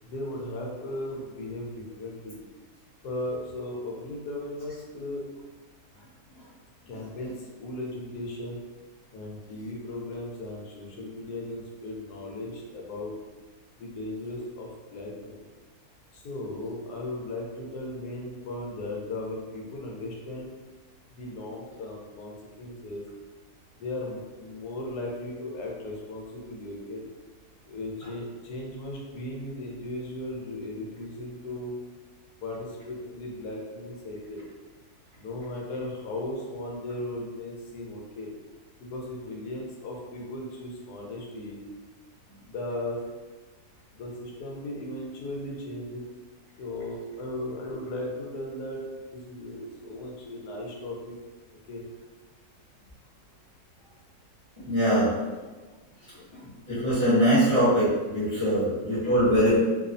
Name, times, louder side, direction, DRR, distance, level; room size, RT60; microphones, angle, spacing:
voice 1, 0.0-2.4 3.0-5.3 5.9-6.0 6.9-8.6 9.1-13.1 13.8-15.5 16.1-20.6 21.1-23.0 23.8-27.0 27.6-31.7 32.4-34.4 35.2-38.3 38.8-41.6 42.4-43.0 43.9-46.0 46.6-51.2 51.7-51.8 56.1-56.3 58.4-58.6, left 1 dB, 85° left, -2 dB, 1.1 m, -37 dB
voice 2, 54.6-55.3 56.3-56.4 56.7-59.6, equal, 25° right, -11 dB, 0.6 m, -22 dB
2.8 x 2.0 x 2.5 m, 1.2 s
omnidirectional pair, 1.6 m